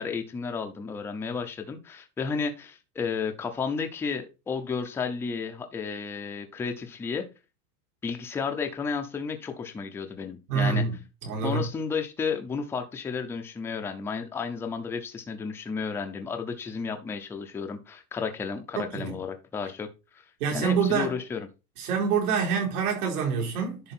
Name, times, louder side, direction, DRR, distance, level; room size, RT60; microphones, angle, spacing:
voice 1, 0.0-7.3 8.0-10.9 11.4-19.9 20.1-20.2 20.5-21.5, left 5 dB, 5° left, 0.5 m, -32 dB
voice 2, 10.5-11.0 11.2-11.7 18.7-19.2 20.4-21.2 21.8-23.9, right 6 dB, 80° right, 4.4 m, -26 dB
10.5 x 4.1 x 4.3 m
supercardioid pair, 160°, 44 cm